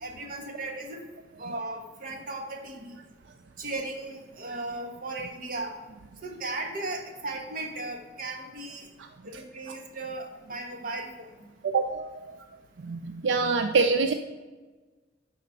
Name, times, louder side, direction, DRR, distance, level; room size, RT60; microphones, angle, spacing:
voice 1, 0.0-1.0 1.4-2.9 3.6-5.7 6.2-8.9 9.2-11.3, right 2 dB, 50° right, 3 dB, 1.2 m, -36 dB
voice 2, 11.6-12.3 12.8-14.1, right 4 dB, 85° right, 7 dB, 0.4 m, -25 dB
10.0 x 4.2 x 5.4 m, 1.3 s
head